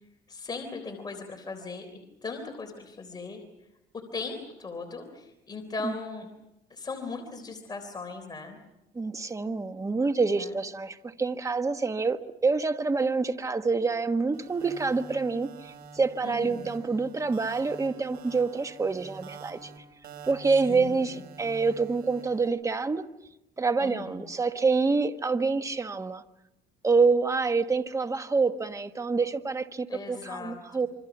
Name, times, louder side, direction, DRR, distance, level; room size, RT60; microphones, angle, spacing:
voice 1, 0.3-3.4 3.9-6.3 6.7-8.6 10.4-10.5 16.2-16.7 20.7-21.1 23.8-24.2 29.9-30.6, left 3 dB, 25° left, 4 dB, 3.6 m, -38 dB
voice 2, 8.9-19.7 20.2-23.1 23.6-26.2 26.8-30.9, right 4 dB, 20° right, 9 dB, 1.3 m, -27 dB
sound 1, 14.3-22.5, right 5 dB, 65° right, 4.6 m, -47 dB
27.5 x 24.5 x 6.1 m, 0.91 s
cardioid pair, 110°, 17 cm